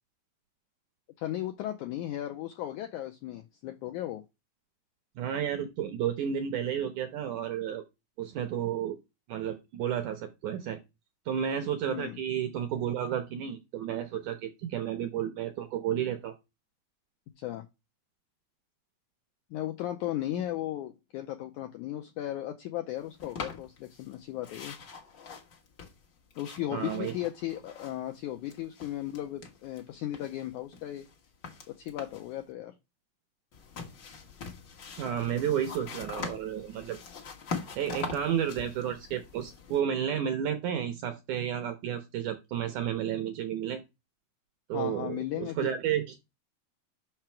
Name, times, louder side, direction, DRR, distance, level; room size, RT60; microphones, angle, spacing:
voice 1, 1.2-4.2 11.9-12.2 17.4-17.7 19.5-24.8 26.4-31.1 31.7-32.7 44.7-45.8, left 13 dB, 85° left, 1.7 m, -36 dB
voice 2, 5.2-7.8 8.2-9.0 9.3-10.8 11.3-16.3 26.7-27.1 35.0-37.0 37.8-43.8 44.7-46.2, right 9 dB, 75° right, 1.8 m, -32 dB
sound 1, 23.2-24.1 24.4-28.2 28.4-29.8 30.1-32.3 33.5-39.8, left 5 dB, 60° left, 1.1 m, -43 dB
6.1 x 5.8 x 4.4 m
omnidirectional pair, 4.3 m